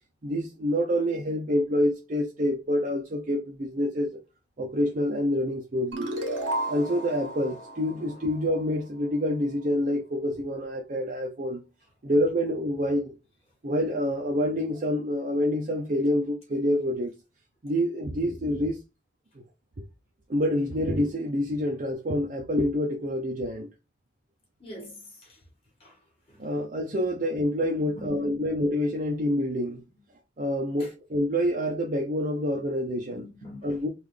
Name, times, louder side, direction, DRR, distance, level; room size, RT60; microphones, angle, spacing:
voice 1, 0.2-4.2 4.6-6.1 6.7-11.6 12.0-13.1 13.6-17.1 17.6-18.8 20.3-23.7 26.4-29.8 30.4-33.2 33.6-33.9, equal, 40° right, 0.5 m, -27 dB
sound 1, 5.9-9.1, right 1 dB, 75° right, 0.9 m, -34 dB
voice 2, 24.6-25.4 25.8-26.0 26.3-26.5 27.8-28.3 30.8-30.9 33.1-33.7, left 1 dB, 30° left, 1.6 m, -45 dB
3.7 x 2.4 x 3.2 m
head